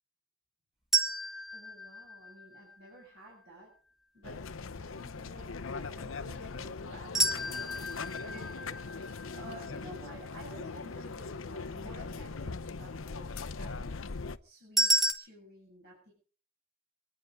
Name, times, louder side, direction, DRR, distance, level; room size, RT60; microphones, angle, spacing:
sound 1, 0.9-3.0 7.1-10.3 14.8-15.1, right 1 dB, ahead, 1.9 m, -31 dB
voice 1, 1.5-3.7 4.1-4.4 4.7-14.1 14.4-16.1, right 1 dB, 55° right, -3 dB, 8.0 m, -52 dB
sound 2, 4.2-14.4, left 4 dB, 85° left, 0.8 m, -40 dB
26.5 x 10.0 x 5.3 m, 0.42 s
head